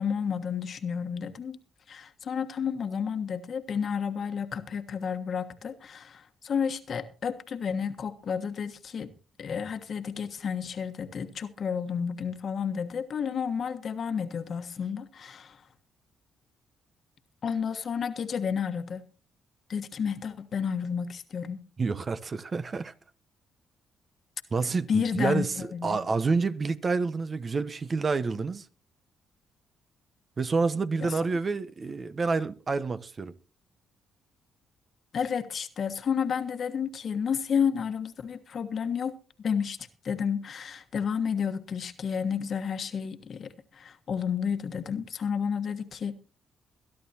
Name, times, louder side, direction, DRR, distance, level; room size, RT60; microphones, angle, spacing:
voice 1, 0.0-1.6 1.9-9.1 9.4-15.6 17.4-19.0 19.7-21.6 24.9-25.5 25.7-26.0 31.0-31.1 35.1-39.8 40.0-46.1, left 7 dB, 55° left, 1.4 m, -31 dB
voice 2, 21.8-22.9 24.5-28.7 30.4-33.3, right 4 dB, 40° right, 1.0 m, -28 dB
22.5 x 11.0 x 2.9 m
supercardioid pair, 60°, 0 cm